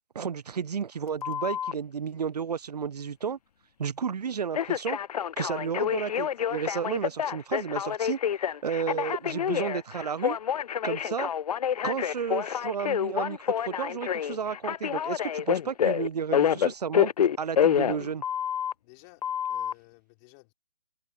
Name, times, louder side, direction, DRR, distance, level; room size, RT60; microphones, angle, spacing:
voice 1, 0.1-3.4 3.8-5.0 5.4-10.4 10.8-11.3 11.8-13.4 13.7-18.2, right 7 dB, 80° right, 0.6 m, -32 dB
Telephone, 1.2-1.7 4.5-18.7 19.2-19.7, left 9 dB, 70° left, 0.4 m, -28 dB
voice 2, 18.8-20.5, left 32 dB, 25° left, 3.8 m, -55 dB
hypercardioid pair, 145°, 20 cm